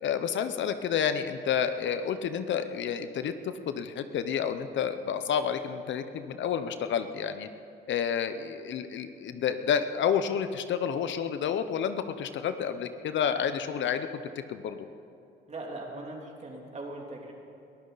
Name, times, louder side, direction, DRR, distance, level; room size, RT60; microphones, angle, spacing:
voice 1, 0.0-7.5 7.9-14.1 14.5-14.9, left 8 dB, 70° left, 10 dB, 0.8 m, -30 dB
voice 2, 15.5-17.3, right 2 dB, 35° right, -1 dB, 3.2 m, -40 dB
22.0 x 14.0 x 4.1 m, 2.6 s
cardioid pair, 90°, 20 cm